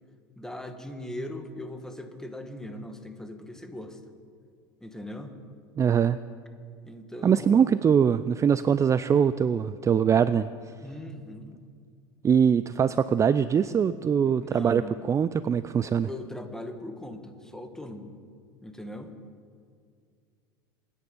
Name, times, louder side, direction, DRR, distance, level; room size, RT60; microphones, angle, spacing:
voice 1, 0.4-4.0 4.8-5.3 6.8-7.7 10.8-11.5 14.2-15.0 16.1-18.1 18.6-19.1, left 1 dB, 5° left, 6 dB, 1.9 m, -39 dB
voice 2, 5.8-6.2 7.2-10.5 12.2-16.1, right 7 dB, 25° right, 15 dB, 0.4 m, -22 dB
25.5 x 9.8 x 5.5 m, 2.1 s
hypercardioid pair, 85°, 12 cm